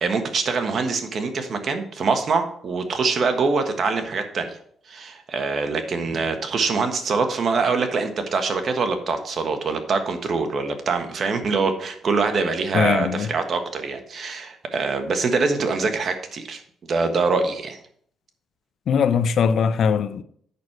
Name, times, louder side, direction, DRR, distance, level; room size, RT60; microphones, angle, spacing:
voice 1, 0.0-4.6 4.9-16.6 16.9-17.8, right 4 dB, 50° right, 1.4 m, -24 dB
voice 2, 12.7-13.3 18.9-20.2, left 7 dB, 65° left, 0.5 m, -20 dB
8.4 x 6.3 x 4.6 m
cardioid pair, 90°, 0 cm